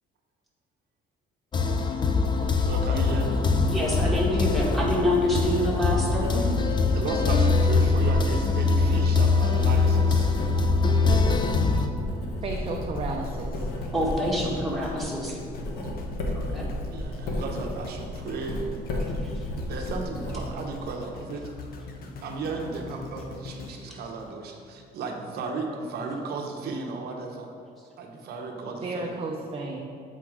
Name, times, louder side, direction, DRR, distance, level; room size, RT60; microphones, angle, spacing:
sound 1, 1.5-11.9, left 4 dB, 25° left, 0.5 m, -23 dB
Writing, 2.1-20.9, left 1 dB, 80° left, 1.3 m, -33 dB
voice 1, 2.6-3.5 6.9-10.3 12.1-12.4 16.9-18.6 19.7-21.5 22.0-27.6 28.0-29.1, right 3 dB, 70° right, 2 dB, 0.8 m, -34 dB
voice 2, 3.7-6.5 8.9-9.0 13.9-15.4 16.5-16.7 19.2-19.5, left 1 dB, ahead, -5 dB, 1.8 m, -27 dB
voice 3, 12.4-13.7 28.8-29.9, right 3 dB, 35° right, 0 dB, 0.6 m, -33 dB
sound 2, 12.7-24.9 25.4-25.5, left 3 dB, 60° left, 0.8 m, -42 dB
7.9 x 4.1 x 4.9 m, 2.3 s
cardioid pair, 110°, 17 cm